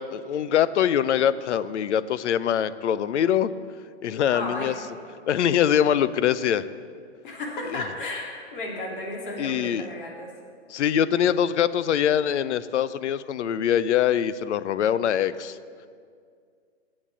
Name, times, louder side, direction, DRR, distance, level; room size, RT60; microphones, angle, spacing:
voice 1, 0.0-3.5 4.0-4.7 5.3-6.7 7.7-7.8 9.4-9.9 10.7-15.6, left 9 dB, 80° left, 16 dB, 0.6 m, -23 dB
voice 2, 4.3-4.7 7.2-10.3, left 2 dB, 45° left, -1 dB, 2.4 m, -33 dB
7.4 x 7.3 x 8.3 m, 2.2 s
hypercardioid pair, 170°, 34 cm